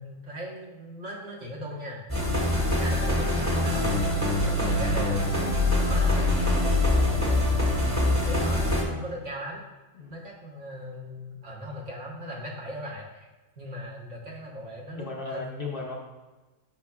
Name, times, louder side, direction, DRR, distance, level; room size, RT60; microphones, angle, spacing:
voice 1, 0.0-2.0 2.6-5.3 5.8-6.5 7.9-9.6 10.1-13.3 13.6-15.5, equal, 60° right, -3 dB, 1.6 m, -39 dB
sound 1, 2.1-8.8, left 1 dB, 15° right, 1.1 m, -24 dB
voice 2, 6.8-7.5 9.9-10.2 15.0-16.0, left 3 dB, 50° left, -1 dB, 0.8 m, -36 dB
8.4 x 5.6 x 2.3 m, 1.2 s
omnidirectional pair, 1.4 m